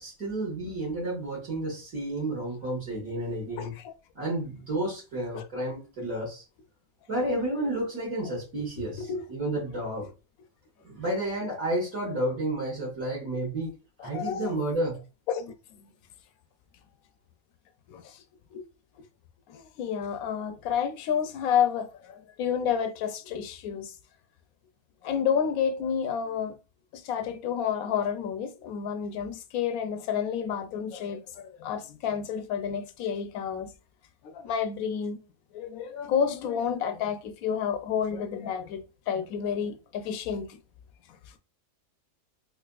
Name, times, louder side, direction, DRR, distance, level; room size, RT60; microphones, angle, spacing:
voice 1, 0.0-3.7 4.2-6.4 7.1-10.1 10.8-13.7 14.0-15.0, right 1 dB, 60° right, 1.8 m, -31 dB
voice 2, 3.6-3.9 5.3-5.4 8.8-9.2 14.0-14.5 15.3-15.5 17.9-18.2 18.5-18.6 19.5-23.9 25.0-26.6 26.9-33.7 34.2-35.2 35.5-38.8 39.1-40.6, left 7 dB, 70° left, 1.0 m, -30 dB
4.1 x 2.5 x 2.3 m
omnidirectional pair, 1.6 m